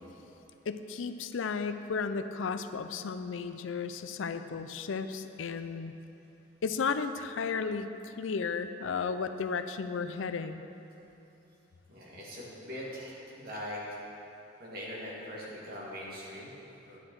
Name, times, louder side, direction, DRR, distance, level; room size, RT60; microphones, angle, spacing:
voice 1, 0.7-6.0 6.6-10.6, left 5 dB, 80° left, 10 dB, 0.5 m, -34 dB
voice 2, 11.9-14.0 14.6-17.0, equal, 50° right, -5 dB, 2.3 m, -42 dB
9.8 x 9.7 x 4.7 m, 2.9 s
head